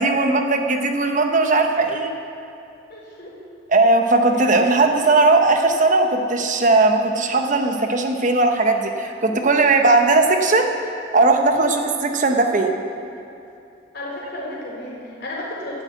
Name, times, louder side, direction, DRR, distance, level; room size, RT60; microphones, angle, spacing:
voice 1, 0.0-2.1 3.7-10.7 11.1-12.8, right 3 dB, 40° right, 4 dB, 1.0 m, -18 dB
voice 2, 2.9-3.3 4.5-4.6 13.9-15.8, left 1 dB, 55° left, -5 dB, 3.7 m, -33 dB
12.0 x 7.7 x 8.2 m, 2.7 s
head